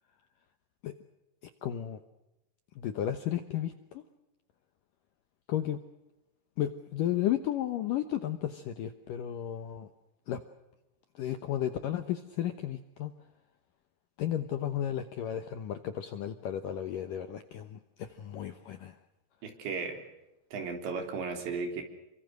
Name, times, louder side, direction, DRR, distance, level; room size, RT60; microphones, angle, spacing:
voice 1, 1.4-2.0 2.8-4.0 5.5-5.8 6.6-9.9 10.3-10.4 11.1-13.1 14.2-19.0, left 11 dB, 75° left, 9 dB, 2.0 m, -33 dB
voice 2, 19.4-20.0 20.5-21.8, right 4 dB, 75° right, 5 dB, 5.8 m, -35 dB
28.5 x 24.0 x 6.6 m, 0.95 s
omnidirectional pair, 5.2 m